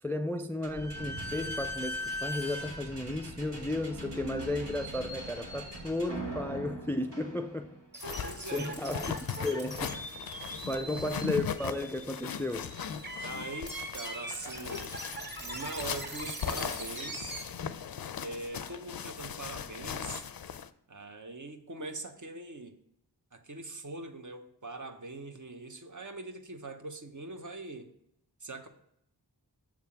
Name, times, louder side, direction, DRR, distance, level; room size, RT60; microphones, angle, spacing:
voice 1, 0.0-7.8 8.2-10.0 10.7-12.7, left 2 dB, 5° left, 0.3 m, -34 dB
Slam / Squeak, 0.6-7.9, equal, 90° right, 1.5 m, -39 dB
sound 1, 7.9-17.4, right 1 dB, 25° right, 2.0 m, -42 dB
sound 2, 8.0-20.7, left 8 dB, 60° left, 0.5 m, -39 dB
voice 2, 8.2-8.8 10.7-11.3 13.2-15.0 15.4-17.3 18.2-20.3 20.9-22.7 23.3-27.9 28.4-28.7, right 2 dB, 45° right, 0.9 m, -42 dB
7.3 x 3.5 x 5.7 m
wide cardioid pair, 50°, 41 cm